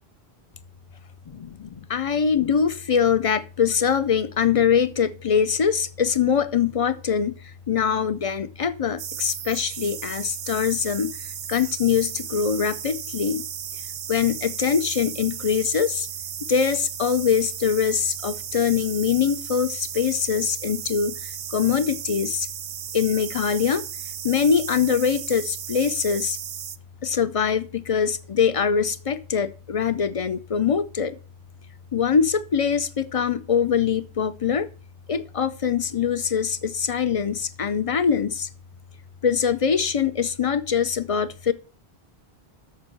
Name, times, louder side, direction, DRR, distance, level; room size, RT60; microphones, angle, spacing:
voice 1, 1.3-7.4 7.7-11.2 11.5-13.4 14.1-16.1 16.5-22.5 22.9-23.8 24.2-26.4 27.0-31.2 31.9-34.7 35.1-38.5 39.2-41.5, left 7 dB, 45° left, 0.5 m, -23 dB
sound 1, 9.0-26.8, right 9 dB, 60° right, 0.7 m, -35 dB
7.0 x 6.6 x 6.6 m
omnidirectional pair, 1.1 m